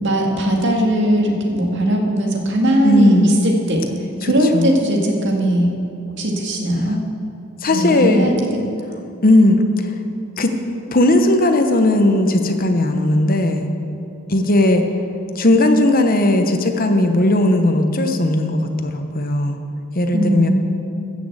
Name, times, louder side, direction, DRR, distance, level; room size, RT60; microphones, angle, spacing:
voice 1, 0.0-3.8 4.2-5.7 6.2-7.0 7.7-8.3 20.1-20.5, right 1 dB, 60° right, 1 dB, 1.9 m, -19 dB
voice 2, 2.8-3.4 4.2-4.7 7.6-8.3 9.2-9.6 10.4-10.5 10.9-13.7 14.3-14.8 15.3-19.6 19.9-20.5, left 1 dB, 45° left, 6 dB, 1.0 m, -16 dB
14.5 x 6.4 x 7.9 m, 2.7 s
head